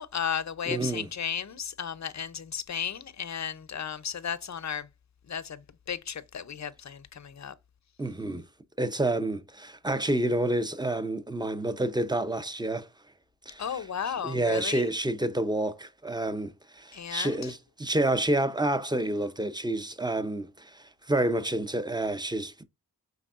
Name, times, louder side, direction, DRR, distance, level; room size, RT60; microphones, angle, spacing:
voice 1, 0.0-4.9 5.3-5.6 5.9-7.5 13.6-14.9 16.9-17.5, left 7 dB, 40° left, 0.6 m, -34 dB
voice 2, 0.7-1.1 8.0-8.4 8.8-12.9 13.5-13.8 14.2-22.6, right 1 dB, 10° right, 0.6 m, -29 dB
5.3 x 3.4 x 2.4 m
cardioid pair, 40°, 42 cm